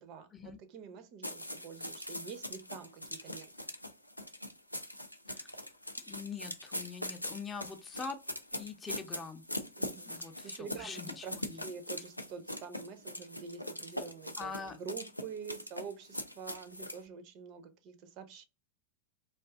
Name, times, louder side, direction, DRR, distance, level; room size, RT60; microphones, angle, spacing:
voice 1, 0.0-3.5 9.8-10.1 10.5-18.5, right 6 dB, 40° right, 0.5 m, -47 dB
sound 1, 1.2-17.0, left 1 dB, 90° left, 0.4 m, -41 dB
voice 2, 6.1-8.2 8.6-9.4 10.0-11.6 14.4-14.8, left 5 dB, 20° left, 0.5 m, -43 dB
2.6 x 2.3 x 3.3 m
figure-of-eight pair, 90°, 0 cm